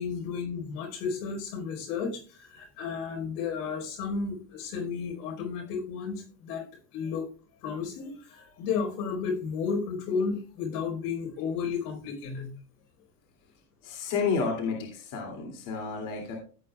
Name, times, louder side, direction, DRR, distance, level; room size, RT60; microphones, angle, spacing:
voice 1, 0.0-6.6 6.9-7.3 7.6-12.5, left 5 dB, 75° left, 3 dB, 4.9 m, -33 dB
voice 2, 13.8-16.3, left 5 dB, 40° left, 1 dB, 2.9 m, -31 dB
15.0 x 8.7 x 2.4 m, 0.38 s
supercardioid pair, 150°, 48 cm